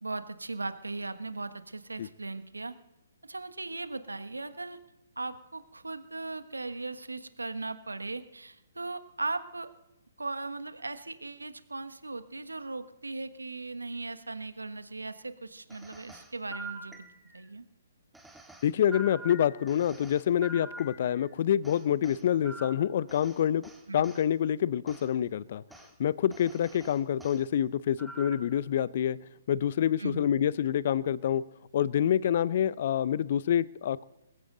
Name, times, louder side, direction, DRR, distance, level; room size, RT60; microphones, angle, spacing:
voice 1, 0.0-2.8 3.2-4.8 5.2-9.7 10.2-17.1 17.3-17.6 23.9-24.1 26.7-26.8 30.0-30.2, right 3 dB, 90° right, 11 dB, 1.3 m, -38 dB
sound 1, 15.7-17.5 18.1-21.3 21.6-24.2 24.9-25.1 25.7-25.9 26.3-27.4 28.0-28.6, right 1 dB, 5° right, 1.7 m, -46 dB
voice 2, 18.6-23.6 23.9-25.6 26.0-29.2 29.5-31.4 31.7-34.0, left 10 dB, 50° left, 20 dB, 0.6 m, -27 dB
20.5 x 16.0 x 3.9 m, 0.92 s
figure-of-eight pair, 135°, 0 cm